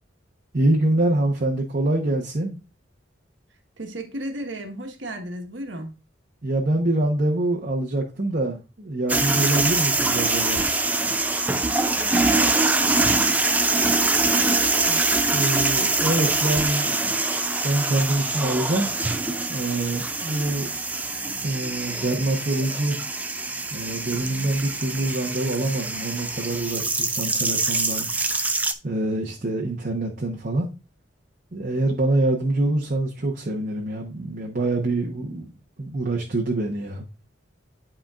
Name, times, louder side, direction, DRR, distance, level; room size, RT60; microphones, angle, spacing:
voice 1, 0.5-2.6 6.4-10.6 15.3-17.2 17.6-18.9 19.5-20.7 21.4-23.0 23.7-28.1 28.8-30.7 31.5-35.5 35.8-37.0, right 2 dB, 45° right, 1.0 m, -25 dB
voice 2, 3.5-5.9 11.9-15.0, right 1 dB, 70° right, 1.4 m, -36 dB
sound 1, 9.1-28.7, right 3 dB, 10° right, 0.4 m, -24 dB
11.5 x 4.4 x 2.4 m
head